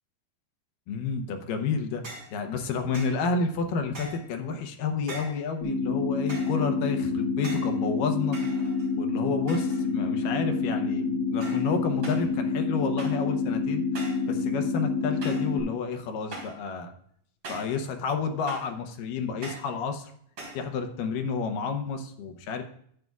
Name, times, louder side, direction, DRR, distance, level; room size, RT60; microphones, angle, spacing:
voice 1, 0.9-2.0 2.3-8.4 9.0-13.8 14.3-16.9 17.5-20.1 20.5-22.6, left 5 dB, 80° left, 6 dB, 2.6 m, -30 dB
sound 1, 2.0-2.3 2.9-3.2 3.9-4.3 5.1-5.4 6.3-6.6 7.4-7.8 8.3-9.0 9.5-9.9 10.2-10.6 11.4-11.7 12.0-12.3 13.0-13.3 13.9-14.3 15.2-15.5 16.3-16.6 17.4-17.8 18.5-18.8 19.4-19.7 20.4-20.7, right 1 dB, 35° right, 4.4 m, -41 dB
sound 2, 5.6-15.6, left 4 dB, 50° left, 3.3 m, -28 dB
11.5 x 9.1 x 2.4 m, 0.66 s
omnidirectional pair, 3.8 m